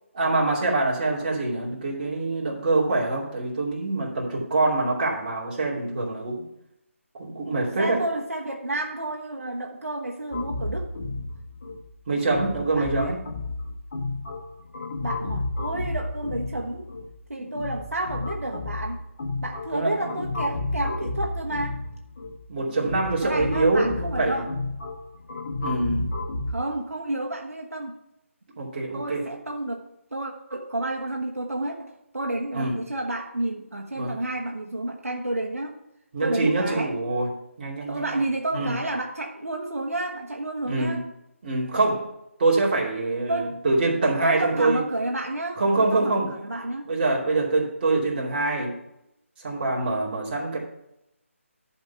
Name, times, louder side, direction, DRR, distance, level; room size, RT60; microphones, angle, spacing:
voice 1, 0.2-6.4 7.1-8.0 12.1-13.2 19.7-20.1 22.5-24.4 25.6-26.1 28.6-29.2 32.5-32.8 33.9-34.2 36.1-37.3 37.6-38.2 38.5-38.7 40.6-41.0 41.4-42.1 42.4-44.8 45.6-46.4 46.9-48.7 49.4-50.6, right 2 dB, 40° right, -3 dB, 2.6 m, -25 dB
voice 2, 7.8-10.9 12.7-13.2 15.0-16.9 17.3-19.0 19.4-21.8 23.2-24.5 26.5-28.0 28.9-35.8 36.2-37.0 37.9-41.0 43.3-43.6 44.2-46.9, right 1 dB, 85° right, 0 dB, 1.2 m, -30 dB
sound 1, 10.3-26.5, left 2 dB, 40° left, 1.4 m, -32 dB
11.5 x 4.4 x 5.7 m, 0.82 s
figure-of-eight pair, 155°, 7 cm